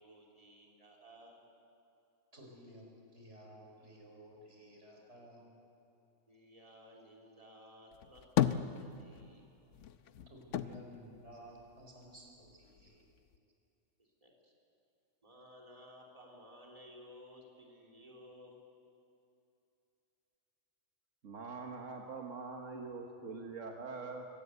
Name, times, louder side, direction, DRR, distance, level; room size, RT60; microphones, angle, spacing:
voice 1, 0.0-1.4 6.3-9.4 12.8-12.9 14.0-14.5 15.2-18.6, equal, 30° right, -2 dB, 3.4 m, -57 dB
voice 2, 2.3-5.5 10.3-13.0, equal, 65° right, 0 dB, 5.1 m, -55 dB
sound 1, 7.9-9.4 9.7-12.1 12.5-13.4, left 10 dB, 80° left, 1.0 m, -35 dB
voice 3, 21.2-24.3, right 4 dB, 85° right, 2 dB, 1.7 m, -44 dB
24.5 x 17.5 x 8.1 m, 2.7 s
omnidirectional pair, 1.3 m